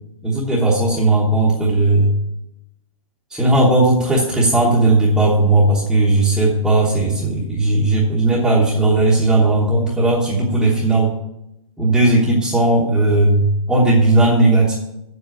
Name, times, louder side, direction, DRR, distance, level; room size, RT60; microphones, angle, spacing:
voice 1, 0.2-2.1 3.3-11.1 11.8-14.7, right 2 dB, ahead, -7 dB, 1.1 m, -16 dB
7.8 x 7.6 x 7.6 m, 0.84 s
hypercardioid pair, 165°, 18 cm